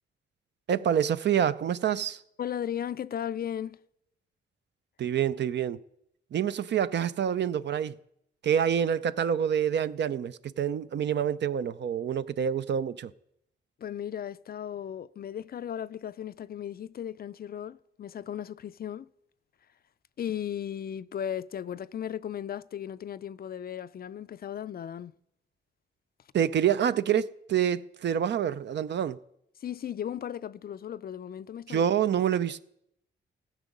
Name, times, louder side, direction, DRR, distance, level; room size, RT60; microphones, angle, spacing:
voice 1, 0.7-2.2 5.0-5.8 6.3-7.9 8.4-13.1 26.3-29.2 31.7-32.6, right 9 dB, 55° right, 0.5 m, -27 dB
voice 2, 2.4-3.8 13.8-19.1 20.2-25.1 29.6-31.9, left 9 dB, 45° left, 0.4 m, -36 dB
15.0 x 6.2 x 5.3 m
cardioid pair, 65°, 21 cm